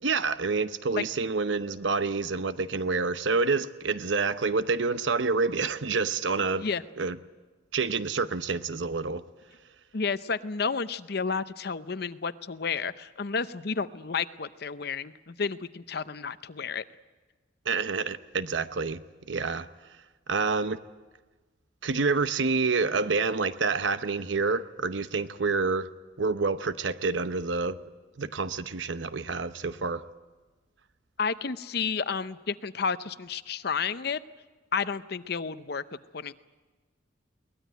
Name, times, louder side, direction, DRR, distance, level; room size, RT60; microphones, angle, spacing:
voice 1, 0.0-6.7 7.0-7.2 7.7-9.2 17.7-19.0 19.3-19.7 20.3-20.8 21.8-25.9 26.2-27.8 28.2-30.0, right 4 dB, 80° right, 0.9 m, -28 dB
voice 2, 9.9-16.8 31.2-34.2 34.7-35.8 36.1-36.3, left 5 dB, 55° left, 0.7 m, -31 dB
22.5 x 19.0 x 9.2 m
head